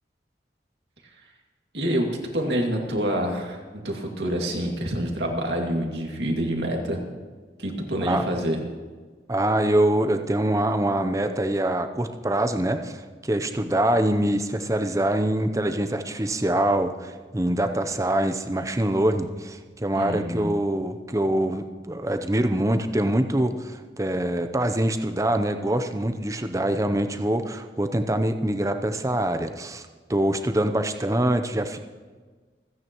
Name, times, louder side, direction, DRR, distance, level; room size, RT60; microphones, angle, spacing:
voice 1, 1.7-2.1 2.3-7.0 7.6-8.6 19.9-20.5, equal, 75° right, 1 dB, 2.2 m, -27 dB
voice 2, 9.3-31.8, right 1 dB, 20° right, 7 dB, 0.7 m, -24 dB
27.5 x 9.6 x 3.0 m, 1.4 s
head